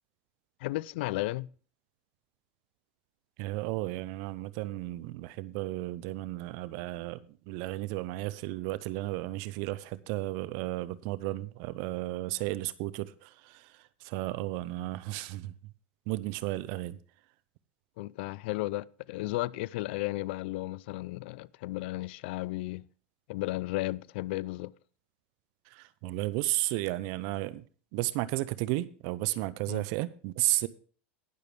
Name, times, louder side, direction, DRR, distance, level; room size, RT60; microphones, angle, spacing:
voice 1, 0.6-1.5 18.0-22.9 23.3-24.7 29.7-29.8, left 19 dB, 70° left, 0.4 m, -34 dB
voice 2, 3.4-15.5 16.1-17.0 25.7-27.6 27.9-30.7, right 18 dB, 60° right, 0.6 m, -33 dB
19.0 x 6.7 x 3.3 m
supercardioid pair, 115°, 6 cm